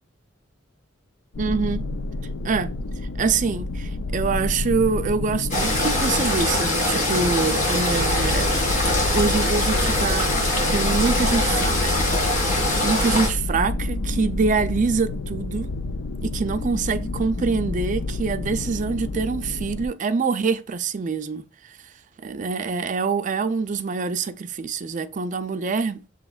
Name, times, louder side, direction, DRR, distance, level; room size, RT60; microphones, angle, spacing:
sound 1, 1.3-19.9, left 2 dB, 65° left, 0.4 m, -28 dB
voice 1, 1.4-1.9 2.4-2.7 3.1-8.5 9.1-10.3 10.7-15.7 16.2-21.9 22.2-26.0, right 4 dB, 40° right, 0.4 m, -25 dB
sound 2, 5.5-13.3, left 1 dB, 45° left, 2.1 m, -23 dB
7.0 x 2.8 x 2.3 m
head